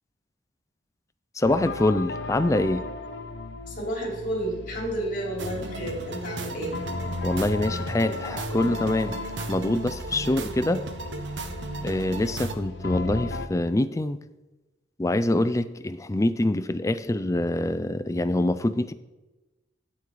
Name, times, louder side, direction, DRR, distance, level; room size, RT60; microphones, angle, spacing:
sound 1, 1.4-13.5, left 3 dB, 80° left, 0.7 m, -36 dB
voice 1, 1.4-2.8 7.2-9.2 9.5-10.8 11.8-14.2 15.0-18.9, left 1 dB, 20° left, 12 dB, 0.4 m, -25 dB
voice 2, 3.7-6.8 10.2-10.3, right 1 dB, 50° left, -1 dB, 3.6 m, -31 dB
sound 2, 5.4-12.5, right 3 dB, 85° right, 0.9 m, -35 dB
8.7 x 8.5 x 4.7 m, 1.1 s
head